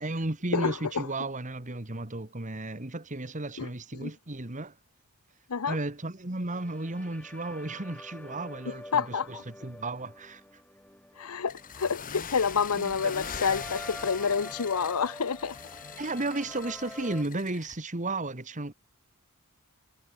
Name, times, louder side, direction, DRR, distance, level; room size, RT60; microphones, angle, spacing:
voice 1, 0.0-4.8 5.7-10.4 12.8-12.9 16.0-18.7, right 2 dB, 35° right, 1.8 m, -34 dB
voice 2, 0.5-1.1 3.6-4.1 5.5-5.8 8.7-9.4 11.2-15.6, left 6 dB, 80° left, 0.8 m, -29 dB
sound 1, 6.5-17.2, left 1 dB, 5° left, 2.8 m, -46 dB
sound 2, 11.5-17.8, left 7 dB, 40° left, 1.1 m, -42 dB
head